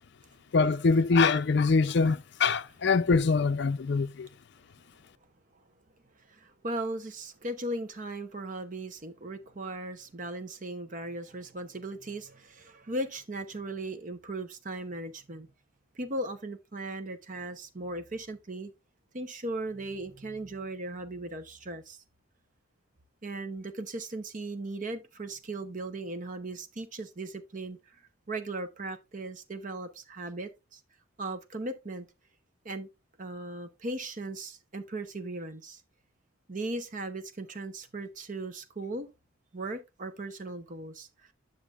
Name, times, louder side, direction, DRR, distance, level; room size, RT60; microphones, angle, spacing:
voice 1, 0.5-4.3, left 4 dB, 55° left, 0.4 m, -24 dB
voice 2, 6.3-15.5 16.0-18.7 19.1-22.0 23.2-27.8 28.3-30.8 31.2-32.1 32.6-32.9 33.2-35.8 36.5-39.1 39.5-41.1, right 2 dB, 40° right, 0.8 m, -37 dB
10.0 x 6.5 x 2.4 m
head